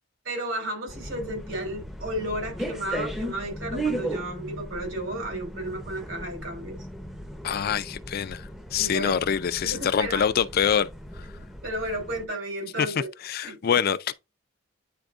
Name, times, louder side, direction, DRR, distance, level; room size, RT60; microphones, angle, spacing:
voice 1, 0.2-6.8 8.8-9.2 9.6-10.2 11.6-13.1 13.4-13.8, right 1 dB, 70° right, 3.0 m, -33 dB
sound 1, 0.9-12.3, right 1 dB, ahead, 0.6 m, -36 dB
voice 2, 7.4-10.9 12.8-12.9 13.2-14.1, left 8 dB, 50° left, 0.4 m, -25 dB
9.2 x 4.4 x 2.4 m
head